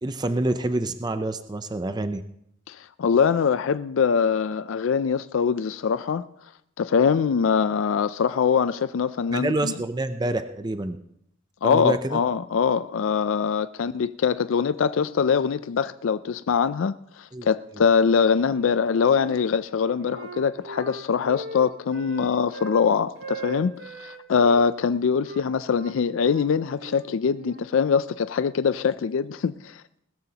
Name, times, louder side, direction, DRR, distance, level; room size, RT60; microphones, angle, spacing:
voice 1, 0.0-2.2 9.3-11.0 11.6-12.2 17.3-17.5, right 2 dB, 20° right, 0.5 m, -27 dB
voice 2, 2.7-6.2 6.8-9.7 11.6-30.0, left 6 dB, 70° left, 0.4 m, -23 dB
Wind instrument woodwind instrument, 18.5-19.4 19.7-22.8 23.2-24.6 25.2-27.7, right 2 dB, 50° right, 1.7 m, -39 dB
20.0 x 14.0 x 2.9 m
head